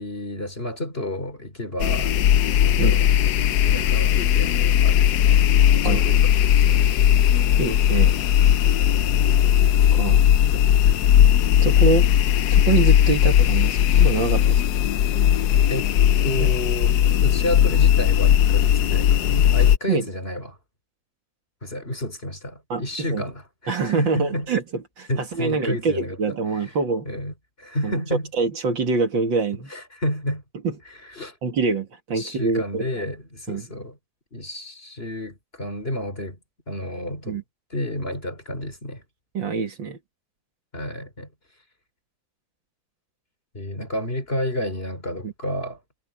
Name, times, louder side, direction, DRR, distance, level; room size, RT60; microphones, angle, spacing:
voice 1, 0.0-2.2 2.6-3.2 3.6-6.9 10.5-11.0 15.7-15.9 16.2-20.6 21.6-24.5 25.1-26.2 26.5-26.7 27.1-28.3 29.7-30.4 31.1-31.4 32.1-34.0 34.3-36.4 36.7-37.4 37.7-39.0 40.7-41.3 43.5-45.8, left 1 dB, 25° left, 3.7 m, -31 dB
sound 1, 1.8-19.8, left 10 dB, 65° left, 1.0 m, -18 dB
voice 2, 7.2-8.1 9.9-10.3 11.6-12.1 12.5-14.6 16.4-16.5 19.9-20.1 22.7-23.2 23.7-24.6 25.0-27.1 27.8-28.0 28.4-29.7 30.6-30.8 31.4-33.0 33.5-33.7 37.3-37.4 39.3-40.0 45.2-45.3, right 4 dB, 65° right, 2.7 m, -25 dB
omnidirectional pair, 2.3 m